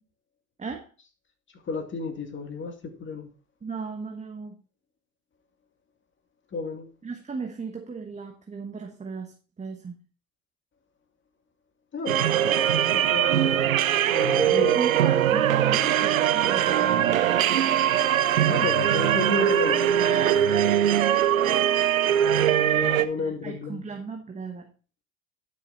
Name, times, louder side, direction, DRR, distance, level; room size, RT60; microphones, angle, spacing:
voice 1, 1.7-3.3 6.5-6.9 11.9-13.8 14.1-14.8 18.4-20.7 22.5-23.9, left 4 dB, 30° left, 2.1 m, -32 dB
voice 2, 3.6-4.6 7.0-10.0 14.7-17.3 23.0-24.7, right 5 dB, 15° right, 1.2 m, -36 dB
sound 1, 12.1-23.0, right 10 dB, 90° right, 0.6 m, -21 dB
10.5 x 6.3 x 4.0 m
hypercardioid pair, 75°, 39 cm